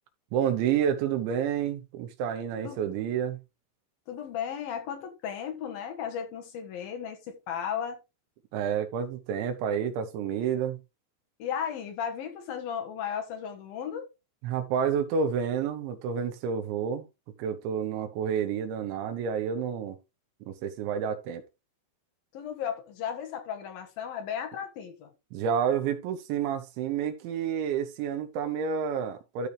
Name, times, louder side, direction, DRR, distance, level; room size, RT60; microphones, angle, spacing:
voice 1, 0.3-3.4 8.5-10.8 14.4-17.1 17.4-20.0 20.5-21.4 25.3-29.5, right 7 dB, 75° right, 3.5 m, -29 dB
voice 2, 4.1-8.0 11.4-14.1 22.3-25.1, left 8 dB, 65° left, 2.6 m, -35 dB
13.5 x 4.6 x 3.3 m
omnidirectional pair, 5.6 m